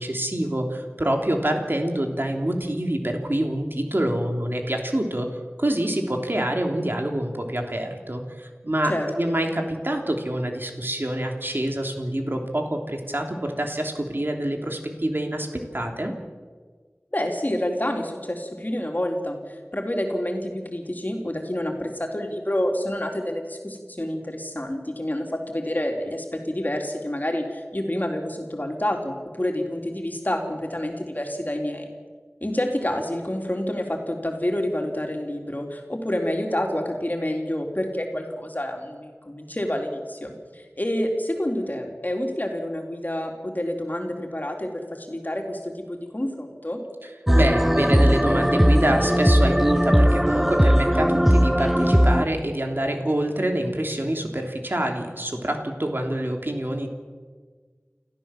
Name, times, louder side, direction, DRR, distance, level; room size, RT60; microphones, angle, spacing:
voice 1, 0.0-5.3 5.6-8.9 9.2-15.5 15.7-16.1 47.0-56.9, right 1 dB, 50° right, 3 dB, 3.2 m, -26 dB
voice 2, 17.1-31.9 32.4-46.8, left 1 dB, 40° left, 2 dB, 3.8 m, -28 dB
sound 1, 47.3-52.2, equal, 5° right, 0.6 m, -18 dB
29.5 x 14.5 x 7.6 m, 1.5 s
wide cardioid pair, 40°, 4 cm